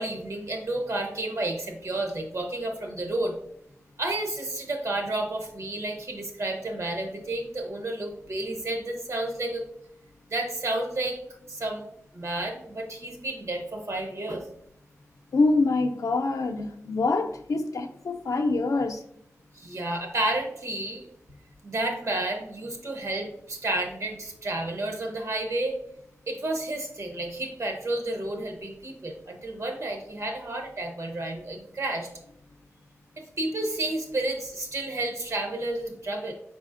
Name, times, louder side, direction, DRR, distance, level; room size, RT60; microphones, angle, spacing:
voice 1, 0.0-3.4 4.0-9.6 10.3-11.2 11.5-11.8 12.1-14.4 19.5-21.1 21.6-25.8 26.3-32.1 33.4-36.3, right 2 dB, 65° right, 0.9 m, -31 dB
voice 2, 15.3-19.0, left 3 dB, 85° left, 0.4 m, -25 dB
4.8 x 4.0 x 2.5 m
wide cardioid pair, 115°, 5 cm